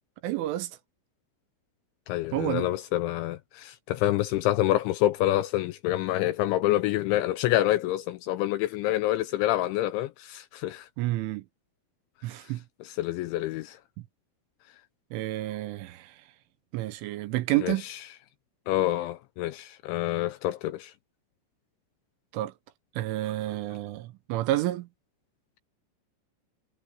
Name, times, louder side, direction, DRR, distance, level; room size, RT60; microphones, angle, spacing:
voice 1, 0.2-0.8 2.3-2.7 11.0-11.4 12.2-12.6 15.1-16.2 16.7-17.9 22.3-22.5 23.0-24.9, right 16 dB, 75° right, 3.2 m, -29 dB
voice 2, 2.1-10.9 12.8-13.8 17.6-18.0 18.7-20.9, left 15 dB, 80° left, 2.7 m, -27 dB
omnidirectional pair, 6.0 m